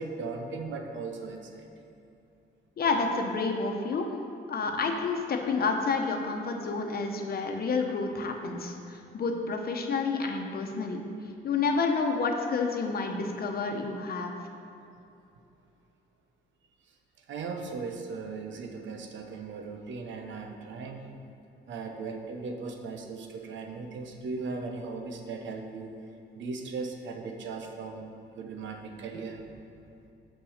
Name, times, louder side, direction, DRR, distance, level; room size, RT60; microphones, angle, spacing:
voice 1, 0.0-1.7 17.3-21.1 21.7-26.0 26.3-29.4, right 4 dB, 70° right, 4 dB, 0.9 m, -38 dB
voice 2, 2.8-4.1 4.5-11.0 11.4-14.3, left 4 dB, 50° left, 3 dB, 1.0 m, -29 dB
5.8 x 5.4 x 6.5 m, 2.8 s
cardioid pair, 90°, 20 cm